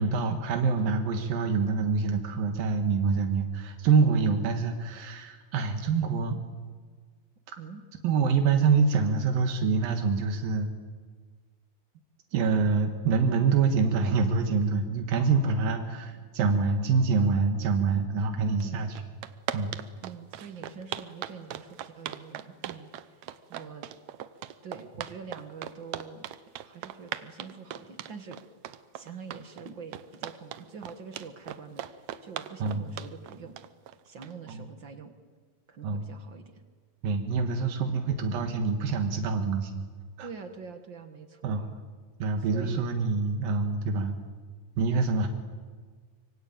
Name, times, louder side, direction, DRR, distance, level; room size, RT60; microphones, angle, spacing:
voice 1, 0.0-6.4 8.0-10.7 12.3-19.0 19.5-19.7 32.6-32.9 34.5-34.6 35.8-36.0 37.0-39.8 40.2-40.3 41.4-41.6 42.2-44.2 44.8-45.3, right 4 dB, 85° right, 5 dB, 3.3 m, -26 dB
voice 2, 4.0-4.5 7.6-7.8 15.2-16.2 17.6-18.1 18.5-18.9 20.0-23.2 23.5-23.9 24.6-26.3 26.6-28.4 28.9-33.5 34.0-35.1 35.7-36.6 37.8-38.0 40.2-41.8 42.5-43.0, right 5 dB, 45° right, 7 dB, 1.6 m, -45 dB
sound 1, 18.6-18.7 18.9-34.5, right 12 dB, 70° right, 1.8 m, -38 dB
25.0 x 24.5 x 8.9 m, 1.5 s
omnidirectional pair, 3.9 m